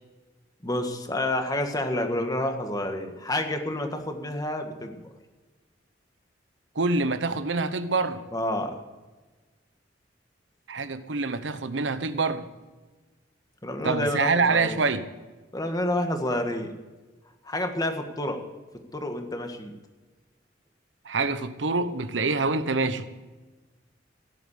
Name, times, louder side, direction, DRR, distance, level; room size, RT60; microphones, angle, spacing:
voice 1, 0.6-5.0 8.3-8.8 13.6-14.8 15.5-16.7 17.4-18.4 18.9-19.7, left 1 dB, 20° left, 1.7 m, -29 dB
voice 2, 6.7-8.2 10.7-12.5 13.8-15.1 21.0-23.1, right 3 dB, 80° right, 1.0 m, -26 dB
16.5 x 8.6 x 8.3 m
head